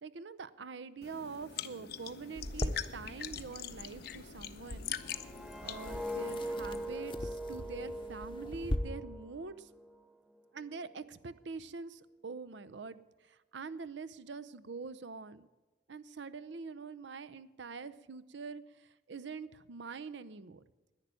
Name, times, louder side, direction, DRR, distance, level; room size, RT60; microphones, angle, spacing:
voice 1, 0.0-5.2 5.6-9.7 10.5-15.5 15.9-20.6, right 4 dB, 70° right, 14 dB, 0.6 m, -45 dB
sound 1, 1.0-6.9, left 9 dB, 60° left, 0.7 m, -43 dB
sound 2, 2.3-8.8, left 1 dB, 30° left, 0.8 m, -42 dB
sound 3, 5.0-10.0 10.4-10.7, equal, 5° right, 0.4 m, -41 dB
10.5 x 10.5 x 9.0 m, 1.2 s
head